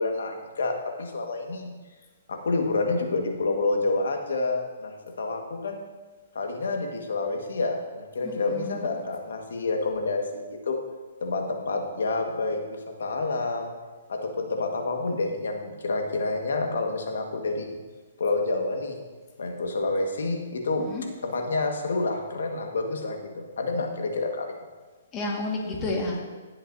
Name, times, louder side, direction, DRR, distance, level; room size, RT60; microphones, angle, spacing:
voice 1, 0.0-1.7 2.3-5.8 6.3-10.8 11.2-13.7 14.1-17.8 18.2-19.0 19.4-20.8 21.2-24.5, left 3 dB, 80° left, 3 dB, 1.7 m, -28 dB
voice 2, 8.2-8.9 20.8-21.0 25.1-26.2, left 2 dB, 20° left, -1 dB, 1.9 m, -31 dB
17.5 x 7.8 x 2.8 m, 1.3 s
hypercardioid pair, 155°, 0 cm